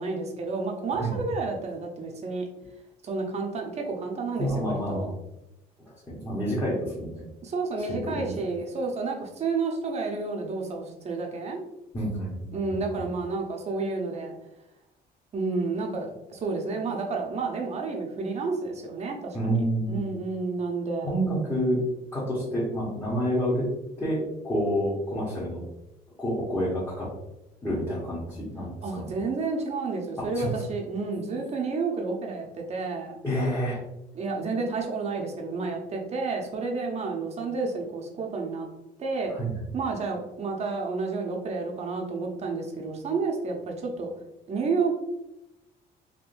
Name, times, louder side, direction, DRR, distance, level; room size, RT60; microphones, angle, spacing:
voice 1, 0.0-2.5 3.0-5.1 7.4-11.6 12.5-14.3 15.3-19.6 19.9-21.1 28.8-33.2 34.1-38.7 39.0-39.3 39.7-44.1 44.5-45.0, right 4 dB, 40° right, 1 dB, 0.7 m, -30 dB
voice 2, 4.4-5.1 6.1-7.2 7.8-8.4 11.9-12.5 19.3-20.0 21.0-21.8 22.1-23.7 24.0-25.6 26.2-27.1 27.6-29.1 30.2-30.6 33.2-33.8 39.3-39.5, equal, 15° left, -8 dB, 1.1 m, -28 dB
3.7 x 2.6 x 2.5 m, 0.90 s
cardioid pair, 110°, 17 cm